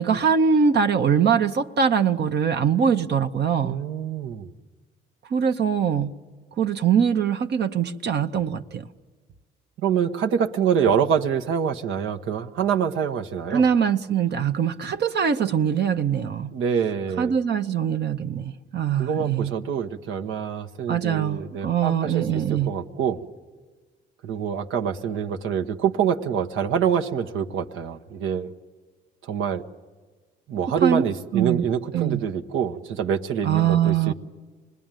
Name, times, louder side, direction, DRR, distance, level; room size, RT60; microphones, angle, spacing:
voice 1, 0.0-3.8 5.3-6.1 6.6-8.9 13.5-16.5 17.2-19.5 20.9-22.7 30.8-31.0 31.3-31.7 31.9-32.2 33.4-34.1, right 7 dB, 60° right, 0.9 m, -22 dB
voice 2, 3.6-4.5 9.8-13.7 16.5-17.3 19.0-23.2 24.2-28.5 29.2-29.6 30.5-34.1, right 7 dB, 85° right, 1.1 m, -26 dB
26.5 x 20.0 x 9.1 m
cardioid pair, 90°, 20 cm